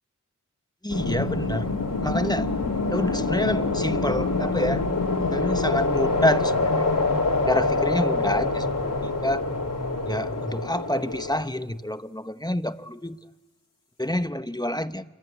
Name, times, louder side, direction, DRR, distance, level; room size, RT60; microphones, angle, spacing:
voice 1, 0.8-1.7 2.0-2.5 2.9-4.8 5.3-6.9 7.5-9.5 10.1-13.2 14.0-15.0, left 1 dB, 10° left, 0.9 m, -27 dB
sound 1, 0.9-11.4, left 3 dB, 80° left, 3.5 m, -25 dB
29.0 x 22.0 x 9.4 m
wide cardioid pair, 45°, 32 cm